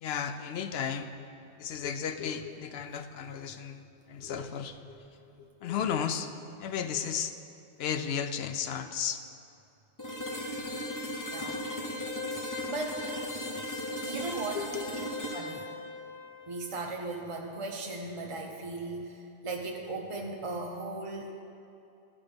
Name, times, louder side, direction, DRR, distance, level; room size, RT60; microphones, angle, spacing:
voice 1, 0.0-1.3 1.6-5.0 5.4-7.3 7.8-9.2 14.5-14.8, left 7 dB, 65° left, 9 dB, 0.7 m, -34 dB
sound 1, 10.0-17.8, left 1 dB, 20° left, 0.6 m, -37 dB
voice 2, 11.3-11.6 12.7-13.0 14.1-14.7 15.3-15.7 16.5-21.4, right 3 dB, 40° right, 1 dB, 0.5 m, -37 dB
14.5 x 5.3 x 5.2 m, 2.7 s
omnidirectional pair, 1.2 m